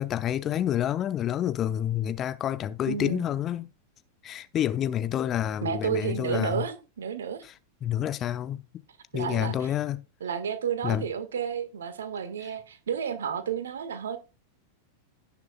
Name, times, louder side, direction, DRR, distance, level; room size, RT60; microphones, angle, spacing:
voice 1, 0.0-3.7 4.2-6.6 7.8-8.6 9.1-10.0 10.8-11.1, left 11 dB, 30° left, 0.7 m, -28 dB
voice 2, 2.8-3.2 5.6-7.4 9.1-9.7 10.2-14.2, right 7 dB, 65° right, 1.6 m, -31 dB
17.0 x 7.1 x 2.3 m
figure-of-eight pair, 90°, 0 cm